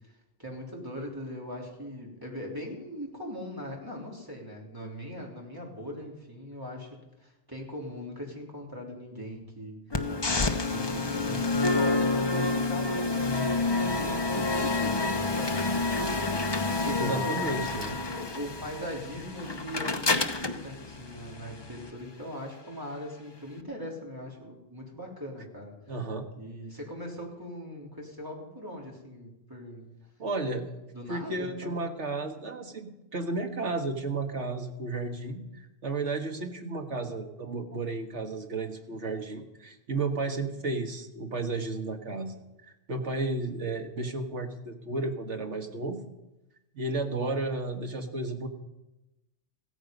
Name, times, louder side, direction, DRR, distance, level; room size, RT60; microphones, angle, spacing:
voice 1, 0.1-6.9 7.2-10.1 10.5-17.7 18.1-25.7 26.4-29.9 30.9-31.9, equal, 20° right, -2 dB, 3.5 m, -40 dB
sound 1, 9.9-21.9, left 3 dB, 25° left, 0.8 m, -29 dB
voice 2, 17.0-18.0 25.9-26.3 30.2-30.7 31.1-46.0 46.7-48.5, right 3 dB, 75° right, 3 dB, 1.9 m, -33 dB
16.0 x 14.5 x 5.3 m, 0.96 s
omnidirectional pair, 1.2 m